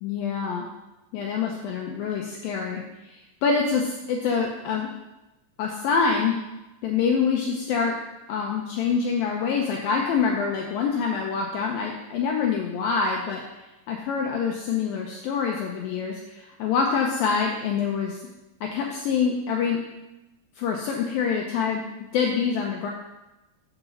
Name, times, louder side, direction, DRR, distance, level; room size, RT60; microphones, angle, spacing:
voice 1, 0.0-0.7 1.1-4.9 5.6-6.4 6.8-8.0 8.3-13.4 13.9-18.2 18.6-19.8 20.6-21.8 22.1-22.9, left 6 dB, 80° left, 0 dB, 2.1 m, -25 dB
7.9 x 6.1 x 6.9 m, 1.0 s
omnidirectional pair, 5.0 m